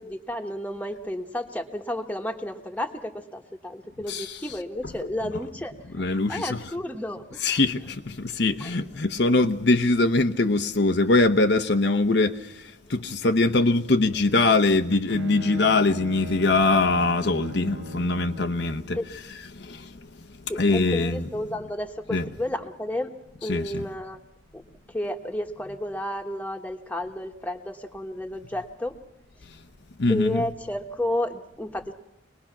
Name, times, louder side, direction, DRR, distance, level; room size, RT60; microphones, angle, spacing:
voice 1, 0.0-7.5 8.6-8.7 18.9-19.1 20.5-23.1 23.4-24.2 24.5-29.0 30.1-31.9, left 1 dB, 10° left, 1.3 m, -32 dB
voice 2, 4.1-4.4 6.0-6.6 7.4-19.0 19.5-20.1 20.4-21.3 22.1-22.2 23.5-23.8 29.5-29.6 30.0-30.5, left 2 dB, 60° left, 0.8 m, -23 dB
Bowed string instrument, 14.9-18.7, equal, 75° right, 1.3 m, -40 dB
25.0 x 20.0 x 5.9 m
head